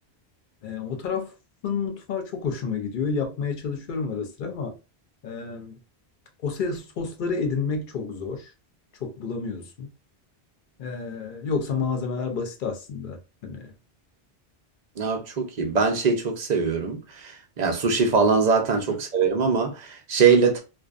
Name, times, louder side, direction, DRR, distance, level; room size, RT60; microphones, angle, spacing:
voice 1, 0.6-1.3 1.6-4.7 5.2-5.8 6.4-8.5 9.0-9.9 10.8-13.7, left 5 dB, 60° left, 0.7 m, -30 dB
voice 2, 15.0-20.6, right 5 dB, 50° right, 0.6 m, -22 dB
2.5 x 2.1 x 2.4 m
omnidirectional pair, 1.1 m